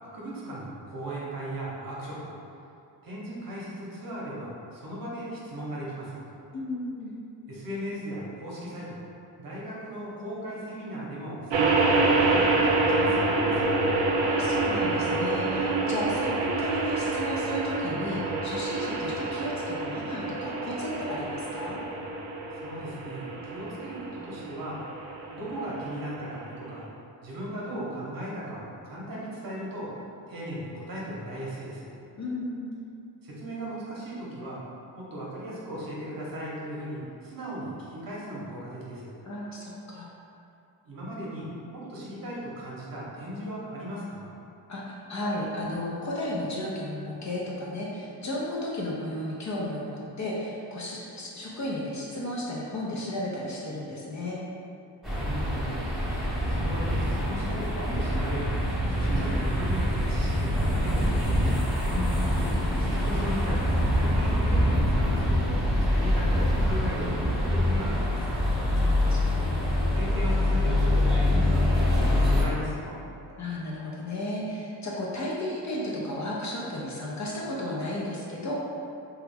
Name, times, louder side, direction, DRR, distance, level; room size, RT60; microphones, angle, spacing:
voice 1, 0.0-2.3 3.0-6.2 7.5-9.0 9.4-13.8 22.5-24.8 25.3-26.9 27.2-29.9 30.3-31.9 33.2-34.6 34.9-39.1 40.8-44.3 55.1-55.8 56.5-61.6 62.8-65.6 65.9-68.4 69.9-73.0, right 1 dB, 50° right, -6 dB, 0.9 m, -37 dB
voice 2, 6.5-7.1 14.2-21.8 32.2-32.7 39.3-40.1 44.7-54.4 61.9-62.4 68.7-69.6 73.4-78.5, left 1 dB, 40° left, -5 dB, 0.5 m, -34 dB
sound 1, 11.5-26.8, right 3 dB, 85° right, 0.5 m, -27 dB
sound 2, 55.0-72.4, left 1 dB, ahead, 0.7 m, -25 dB
3.0 x 2.3 x 3.3 m, 2.7 s
wide cardioid pair, 110°, 44 cm